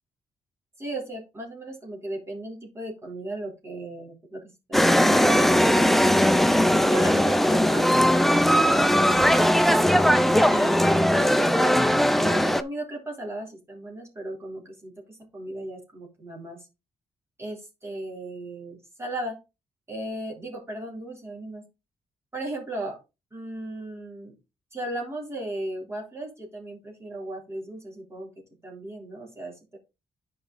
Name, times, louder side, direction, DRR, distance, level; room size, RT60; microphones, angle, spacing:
voice 1, 0.8-4.4 4.7-6.4 6.9-9.6 10.4-16.7 17.4-19.4 19.9-21.7 22.3-23.0 23.3-24.4 24.7-28.3 28.6-29.8, right 1 dB, 20° right, 0 dB, 3.4 m, -36 dB
sound 1, 4.7-12.6, equal, ahead, 0.5 m, -19 dB
9.7 x 5.2 x 3.9 m, 0.26 s
cardioid pair, 115°, 12 cm